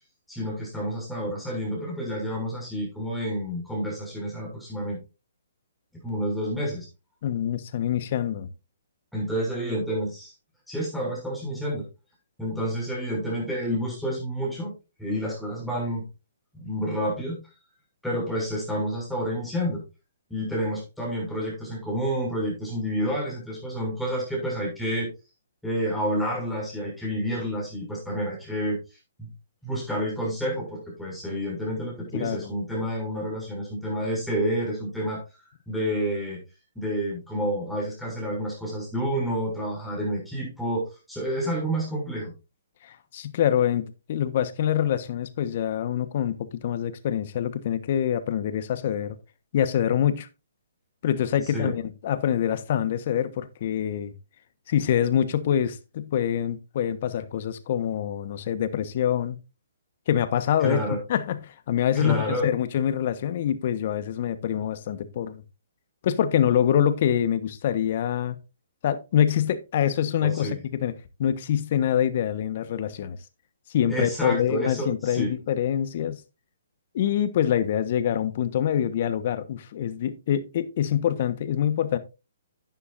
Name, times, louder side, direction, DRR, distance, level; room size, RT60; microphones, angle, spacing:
voice 1, 0.3-5.0 6.0-6.9 9.1-10.3 10.7-11.9 12.4-14.7 15.0-16.1 16.5-17.4 18.0-19.8 20.3-25.1 25.6-28.8 29.2-29.3 29.6-35.2 35.7-36.4 36.7-42.3 51.5-51.7 60.6-61.0 61.9-62.5 70.2-70.6 73.9-75.3, equal, ahead, 6.5 m, -29 dB
voice 2, 7.2-8.5 32.1-32.5 42.8-49.2 49.5-50.3 51.0-54.1 54.7-59.4 60.1-60.8 61.1-65.4 66.0-68.3 68.8-70.9 71.2-73.2 73.7-76.2 76.9-82.0, left 10 dB, 50° left, 1.2 m, -25 dB
11.0 x 10.0 x 2.6 m
hypercardioid pair, 145°, 0 cm